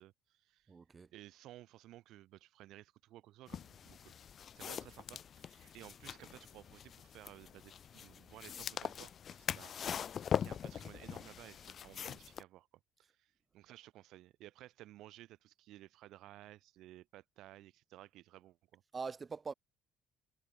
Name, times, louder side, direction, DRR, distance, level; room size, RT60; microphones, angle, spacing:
voice 1, 0.0-0.7 1.1-4.1 4.5-9.8 10.1-12.7 13.0-18.8, right 15 dB, 70° right, 2.5 m, -56 dB
voice 2, 0.7-1.1 18.9-19.5, right 5 dB, 25° right, 1.4 m, -43 dB
sound 1, 3.5-12.4, left 8 dB, 45° left, 0.4 m, -42 dB
cardioid pair, 100°, 0 cm